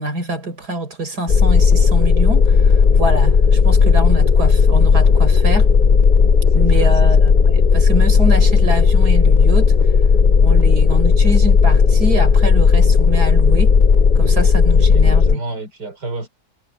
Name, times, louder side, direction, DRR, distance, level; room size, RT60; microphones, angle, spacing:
voice 1, 0.0-5.7 6.5-9.7 10.4-13.8 14.2-15.4, right 1 dB, 70° right, 5.3 m, -25 dB
sound 1, 1.3-15.3, left 5 dB, 45° left, 0.6 m, -13 dB
voice 2, 6.5-6.9 14.9-16.3, right 3 dB, 85° right, 4.7 m, -31 dB
omnidirectional pair, 1.7 m